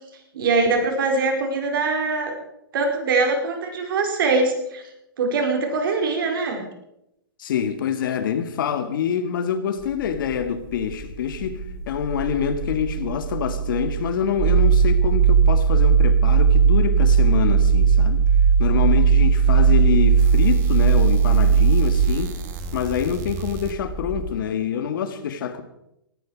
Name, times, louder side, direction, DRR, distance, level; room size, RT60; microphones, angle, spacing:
voice 1, 0.3-2.3 2.7-4.8 5.2-6.7, right 3 dB, 65° right, 4.9 m, -22 dB
voice 2, 7.4-18.3 18.6-22.4 22.7-25.6, left 8 dB, 65° left, 2.2 m, -26 dB
sound 1, 9.8-24.4, right 6 dB, 45° right, 2.5 m, -19 dB
18.5 x 14.0 x 4.9 m
hypercardioid pair, 150°, 12 cm